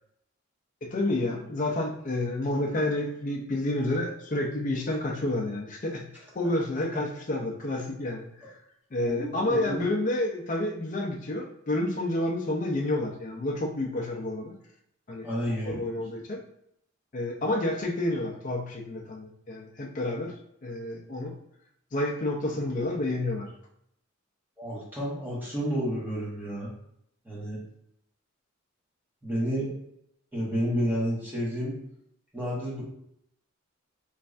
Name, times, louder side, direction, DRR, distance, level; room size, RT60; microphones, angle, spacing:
voice 1, 0.8-6.1 6.3-8.6 8.9-14.5 15.1-15.3 15.6-16.4 17.1-20.3 20.6-21.4 21.9-23.5, left 1 dB, 40° left, 1 dB, 0.5 m, -29 dB
voice 2, 9.1-9.9 15.2-15.7 24.6-26.7 27.2-27.6 29.2-29.7 30.3-31.7 32.3-32.8, equal, 10° right, -8 dB, 1.4 m, -30 dB
3.3 x 3.2 x 2.5 m, 0.75 s
head